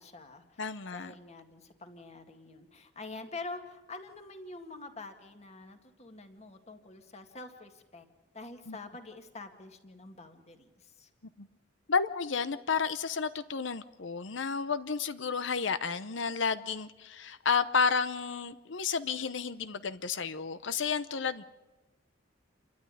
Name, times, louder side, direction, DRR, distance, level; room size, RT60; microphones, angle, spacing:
voice 1, 0.0-8.1 8.3-11.1, left 3 dB, 35° left, 6 dB, 2.0 m, -46 dB
voice 2, 0.6-1.1 8.7-8.8 11.4-11.5 11.9-21.4, left 5 dB, 70° left, 12 dB, 0.8 m, -31 dB
28.5 x 12.5 x 9.9 m, 1.1 s
head